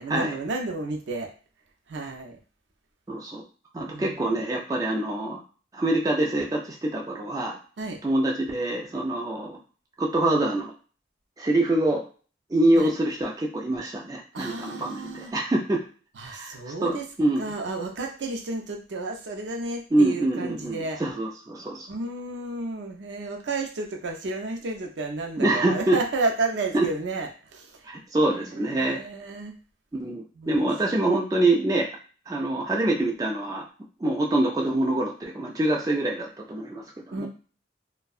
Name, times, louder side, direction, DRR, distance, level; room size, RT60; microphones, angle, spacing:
voice 1, 0.0-1.3 1.9-2.4 3.9-4.4 7.8-8.0 12.8-12.9 14.3-15.3 16.2-17.1 17.4-21.0 21.9-27.9 28.3-29.6 30.3-30.7 37.1-37.3, right 3 dB, 80° right, 3 dB, 0.5 m, -32 dB
voice 2, 3.1-3.4 3.7-5.4 5.7-7.6 8.0-9.6 10.0-10.7 11.4-12.1 12.5-15.8 16.2-17.4 19.9-21.9 25.4-26.0 26.7-26.9 27.9-29.0 29.9-31.9 32.3-33.6 34.0-37.3, right 1 dB, 20° right, -1 dB, 0.3 m, -25 dB
2.6 x 2.1 x 2.3 m, 0.38 s
head